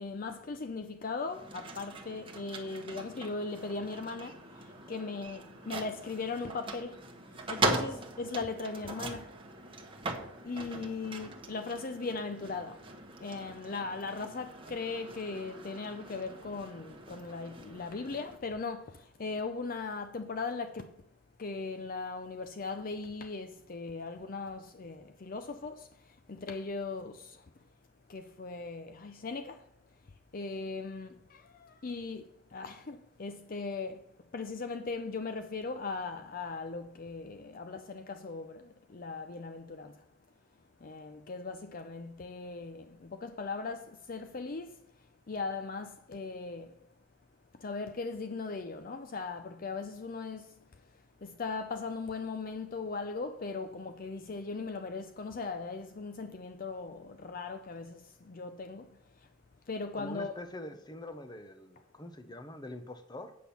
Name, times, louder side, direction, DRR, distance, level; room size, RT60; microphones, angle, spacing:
voice 1, 0.0-4.4 4.9-7.0 7.5-9.3 10.4-12.8 13.2-20.9 21.4-25.9 26.3-27.4 28.1-29.6 30.3-32.2 32.5-34.0 34.3-39.9 40.8-44.8 45.3-46.7 47.6-50.5 51.2-58.9 59.7-60.3, left 4 dB, 45° left, 0.5 m, -38 dB
sound 1, 1.2-18.4, right 2 dB, 25° right, 1.1 m, -40 dB
voice 2, 59.9-63.4, left 1 dB, 20° left, 0.8 m, -44 dB
8.5 x 6.0 x 7.0 m
head